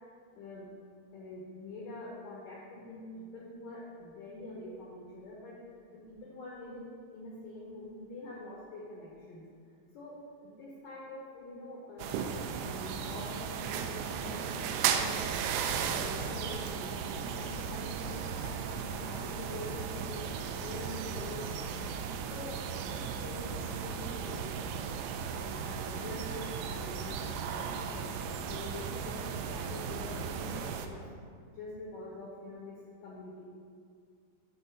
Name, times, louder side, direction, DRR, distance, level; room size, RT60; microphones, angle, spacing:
voice 1, 0.3-0.7 1.1-5.6 5.9-9.4 9.9-10.2 10.4-12.3 12.6-15.2 15.9-20.2 20.6-21.8 22.3-24.9 25.3-28.0 28.5-31.0 31.5-33.4, left 1 dB, 70° left, -5 dB, 2.1 m, -45 dB
sound 1, 12.0-30.9, right 7 dB, 85° right, 2.8 m, -36 dB
8.0 x 4.3 x 6.6 m, 2.2 s
omnidirectional pair, 5.1 m